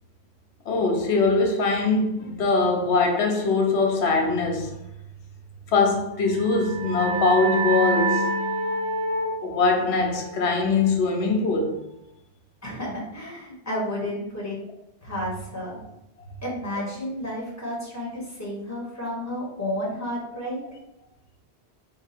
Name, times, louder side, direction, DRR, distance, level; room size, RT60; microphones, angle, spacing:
voice 1, 0.7-4.7 5.7-8.3 9.4-11.8 20.6-20.7, left 3 dB, 90° left, 1.0 m, -22 dB
sound 1, 6.2-11.6, right 1 dB, 50° right, 0.5 m, -28 dB
voice 2, 12.6-14.6 15.0-15.8 16.4-20.6, left 1 dB, 15° left, 1.3 m, -31 dB
3.8 x 2.4 x 4.3 m
omnidirectional pair, 1.1 m